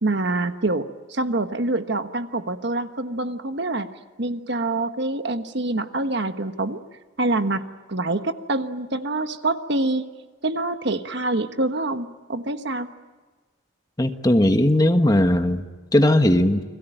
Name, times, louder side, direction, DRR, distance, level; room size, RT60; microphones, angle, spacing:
voice 1, 0.0-3.9 4.2-6.8 7.2-10.1 10.4-12.9, right 2 dB, 55° right, 8 dB, 1.3 m, -26 dB
voice 2, 14.0-15.6 15.9-16.6, left 1 dB, 20° left, 7 dB, 1.3 m, -18 dB
30.0 x 21.0 x 9.1 m, 1.4 s
head